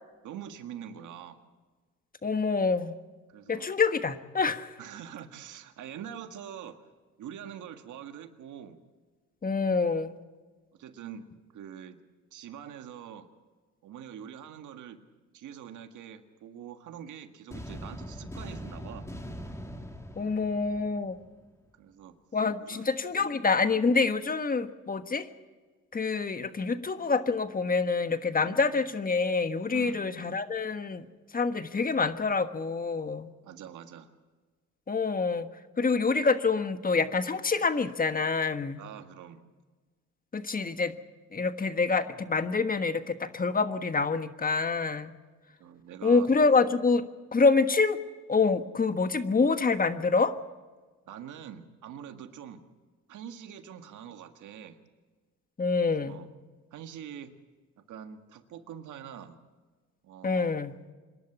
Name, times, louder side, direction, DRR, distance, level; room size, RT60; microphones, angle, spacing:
voice 1, 0.2-1.4 3.3-3.7 4.8-6.8 7.2-8.8 10.7-11.3 11.5-12.0 12.3-13.3 13.8-15.0 15.3-19.1 21.8-22.2 22.6-23.3 28.5-28.6 29.7-30.0 33.4-34.1 38.8-39.4 45.6-46.3 51.1-52.6 53.1-54.8 56.0-56.3 56.7-57.3 57.9-59.4 60.0-60.5, right 9 dB, 80° right, 7 dB, 1.8 m, -44 dB
voice 2, 2.2-3.0 3.5-4.7 9.4-10.2 20.2-21.2 22.3-25.3 25.9-31.0 31.3-33.3 34.9-35.5 35.8-38.8 40.3-40.9 41.3-45.1 46.0-47.0 47.3-48.0 48.3-50.3 55.6-56.2 60.2-60.8, left 4 dB, 30° left, 10 dB, 1.4 m, -26 dB
sound 1, 17.5-21.5, equal, 10° left, 2.3 m, -42 dB
26.5 x 11.5 x 8.7 m, 1.4 s
cardioid pair, 90°, 30 cm